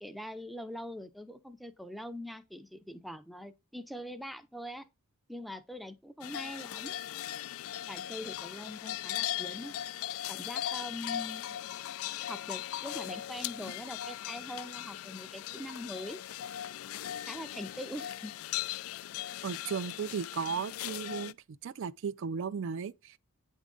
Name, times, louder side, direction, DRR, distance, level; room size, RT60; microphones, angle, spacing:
voice 1, 0.0-4.8 5.3-6.9 7.9-9.7 10.3-11.4 12.3-16.2 17.3-18.3, equal, ahead, 0.5 m, -43 dB
sound 1, 6.2-21.3, left 12 dB, 75° left, 0.3 m, -39 dB
voice 2, 19.4-21.4 21.6-23.2, right 6 dB, 60° right, 0.4 m, -35 dB
9.1 x 3.6 x 3.7 m
head